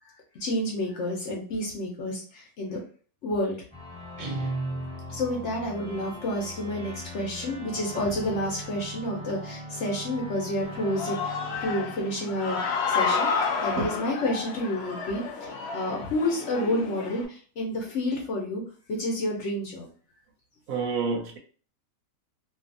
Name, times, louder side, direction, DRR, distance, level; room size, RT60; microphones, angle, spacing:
voice 1, 0.0-2.8 3.2-3.6 5.1-18.6 18.9-19.9, left 1 dB, 60° left, 0.9 m, -30 dB
sound 1, 3.7-13.0, left 1 dB, 5° left, 0.9 m, -41 dB
Guitar, 4.2-5.4, right 3 dB, 45° right, 0.7 m, -33 dB
Human voice / Cheering, 10.6-17.2, left 5 dB, 80° left, 0.5 m, -30 dB
voice 2, 20.7-21.4, right 4 dB, 70° right, 0.9 m, -28 dB
2.6 x 2.4 x 2.5 m
omnidirectional pair, 1.6 m